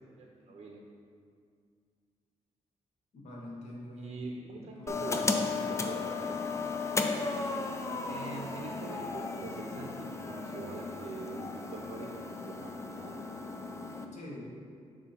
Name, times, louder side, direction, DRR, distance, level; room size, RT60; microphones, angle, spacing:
voice 1, 0.2-0.8 4.0-6.4 8.1-13.1, right 3 dB, 60° right, -1 dB, 0.6 m, -44 dB
voice 2, 3.1-5.0 14.1-14.5, left 1 dB, 70° left, -3 dB, 1.2 m, -45 dB
sound 1, 4.9-14.0, left 4 dB, 25° left, 0.4 m, -35 dB
6.7 x 2.7 x 5.6 m, 2.3 s
wide cardioid pair, 135°, 12 cm